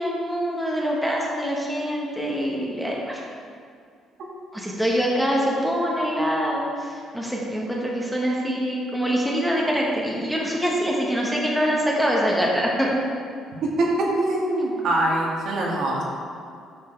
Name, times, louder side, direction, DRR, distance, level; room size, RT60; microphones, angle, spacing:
voice 1, 0.0-3.2 4.5-12.9, equal, ahead, -3 dB, 1.2 m, -24 dB
voice 2, 13.6-16.0, right 1 dB, 60° right, -3 dB, 1.9 m, -23 dB
9.5 x 6.0 x 4.5 m, 2.3 s
cardioid pair, 145°, 0 cm